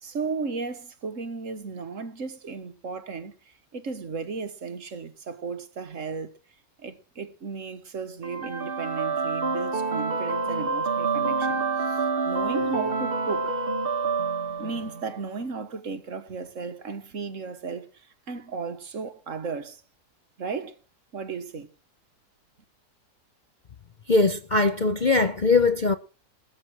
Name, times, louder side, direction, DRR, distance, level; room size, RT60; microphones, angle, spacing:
voice 1, 0.0-6.3 6.8-13.5 14.6-19.8 20.4-20.8 21.1-21.7, right 5 dB, 55° right, 1.6 m, -35 dB
sound 1, 8.2-15.2, right 4 dB, 40° right, 1.5 m, -27 dB
voice 2, 24.1-25.9, left 3 dB, 45° left, 0.6 m, -21 dB
19.5 x 8.1 x 6.1 m
omnidirectional pair, 1.6 m